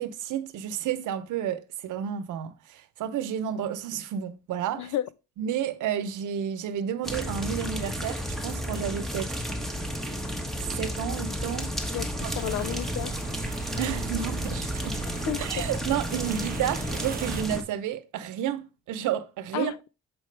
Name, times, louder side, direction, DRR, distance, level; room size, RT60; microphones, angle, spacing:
voice 1, 0.0-4.9 5.4-9.4 10.8-11.7 13.8-15.0 15.3-19.7, right 9 dB, 80° right, 0.8 m, -31 dB
voice 2, 4.7-5.1 11.9-13.2 15.3-15.7 19.5-19.9, left 13 dB, 70° left, 0.4 m, -32 dB
sound 1, 7.0-17.6, equal, ahead, 1.3 m, -32 dB
sound 2, 12.2-17.4, right 8 dB, 30° right, 0.4 m, -40 dB
7.4 x 4.7 x 3.3 m
cardioid pair, 90°, 30 cm